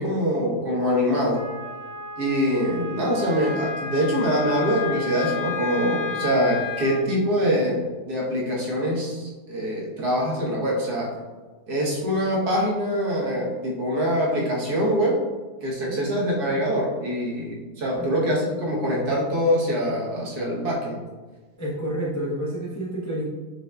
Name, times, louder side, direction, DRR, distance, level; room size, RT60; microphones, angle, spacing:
voice 1, 0.0-1.4 2.2-11.2 11.7-15.2 15.6-21.0, equal, 75° right, -3 dB, 1.5 m, -24 dB
Wind instrument woodwind instrument, 1.3-7.0, left 5 dB, 50° left, 1.8 m, -33 dB
voice 2, 21.6-23.3, right 1 dB, 25° left, -6 dB, 0.3 m, -29 dB
6.6 x 2.6 x 2.2 m, 1.3 s
omnidirectional pair, 1.7 m